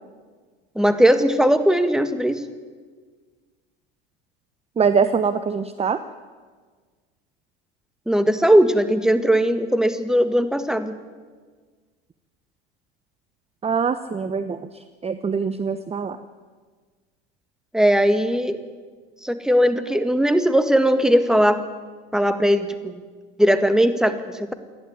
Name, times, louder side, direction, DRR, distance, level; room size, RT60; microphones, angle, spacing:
voice 1, 0.8-2.4 8.1-10.9 17.7-18.6 19.2-21.6 22.1-23.0 23.4-24.2, equal, ahead, 9 dB, 1.8 m, -18 dB
voice 2, 4.8-6.0 13.6-16.2, right 6 dB, 20° right, 12 dB, 0.9 m, -23 dB
28.5 x 11.0 x 9.7 m, 1.5 s
hypercardioid pair, 90°, 30 cm